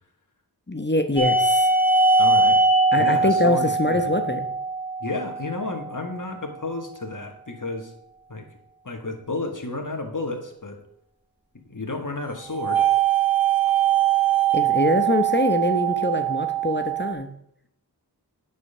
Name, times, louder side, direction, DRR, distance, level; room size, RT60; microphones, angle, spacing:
voice 1, 0.7-1.7 2.9-4.5 14.5-17.3, left 2 dB, 25° left, 7 dB, 0.9 m, -24 dB
sound 1, 1.2-6.1 12.5-17.1, right 5 dB, 5° right, 1.8 m, -21 dB
voice 2, 2.2-2.6 2.9-4.1 5.0-7.9 8.3-8.5 8.8-10.8 11.7-12.9, left 2 dB, 50° left, 4 dB, 1.8 m, -32 dB
9.3 x 5.5 x 6.9 m, 0.74 s
wide cardioid pair, 55°, 39 cm